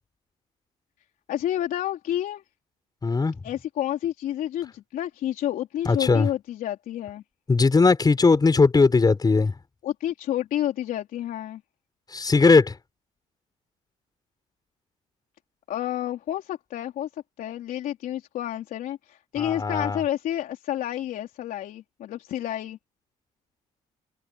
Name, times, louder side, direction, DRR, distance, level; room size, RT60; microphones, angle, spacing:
voice 1, 1.3-2.4 3.4-7.2 9.8-11.6 15.7-17.1 17.4-22.8, left 12 dB, 70° left, 3.7 m, -30 dB
voice 2, 3.0-3.4 5.8-6.3 7.5-9.5 12.1-12.7 19.4-20.0, left 4 dB, 25° left, 6.1 m, -19 dB
cardioid pair, 85°, 15 cm